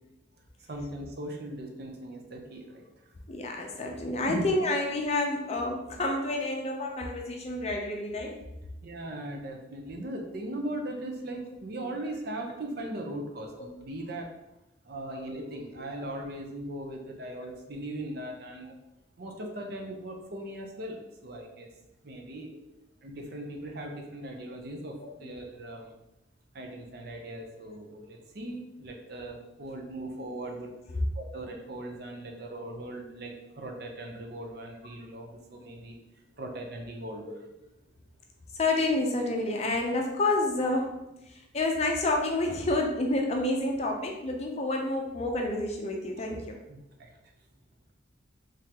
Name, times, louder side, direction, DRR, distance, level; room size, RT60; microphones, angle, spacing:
voice 1, 0.7-3.1 4.3-4.5 8.8-14.3 14.8-18.7 19.2-21.7 22.0-22.5 23.0-25.9 26.5-36.0 36.4-37.3 46.7-47.1, right 1 dB, 50° right, 2 dB, 0.6 m, -39 dB
voice 2, 3.3-8.4 13.6-13.7 15.1-15.5 17.4-17.5 25.0-25.3 38.6-41.0 41.3-46.6, left 2 dB, 35° left, 2 dB, 0.5 m, -29 dB
3.7 x 3.2 x 2.8 m, 0.91 s
head